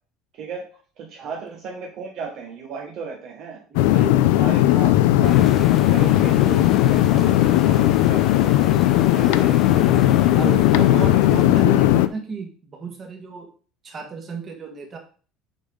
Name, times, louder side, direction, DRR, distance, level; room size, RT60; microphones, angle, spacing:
voice 1, 1.0-3.6 4.4-8.8 9.1-9.9 10.4-11.4 11.7-11.8, right 5 dB, 40° right, 1 dB, 1.0 m, -36 dB
voice 2, 3.7-4.8 9.2-9.5 10.4-13.5 13.8-15.0, right 4 dB, 25° right, 3 dB, 1.6 m, -34 dB
sound 1, 3.8-12.1, left 15 dB, 85° left, 0.5 m, -17 dB
sound 2, 5.2-11.7, left 4 dB, 15° left, 0.4 m, -32 dB
7.3 x 5.5 x 3.8 m, 0.40 s
cardioid pair, 175°, 0 cm